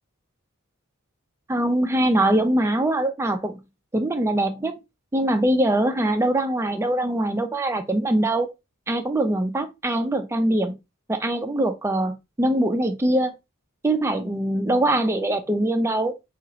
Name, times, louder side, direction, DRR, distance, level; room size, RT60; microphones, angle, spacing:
voice 1, 1.5-3.6 3.9-4.7 5.1-8.5 8.9-10.7 11.1-13.3 13.8-16.1, right 1 dB, 10° right, 0.3 m, -22 dB
2.9 x 2.4 x 2.6 m
head